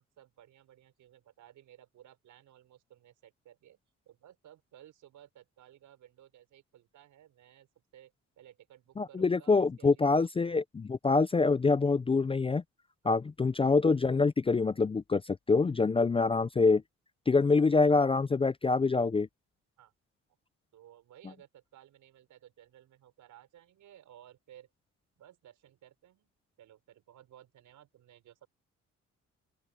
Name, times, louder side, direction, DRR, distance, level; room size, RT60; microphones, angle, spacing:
voice 1, 0.0-3.8 4.1-10.5 13.0-13.1 19.8-19.9 20.7-24.7 25.2-26.3 26.6-28.5, right 11 dB, 80° right, 5.3 m, -57 dB
voice 2, 9.0-12.6 13.0-16.8 17.3-19.3, left 4 dB, 20° left, 0.4 m, -25 dB
open air
cardioid pair, 90°, 30 cm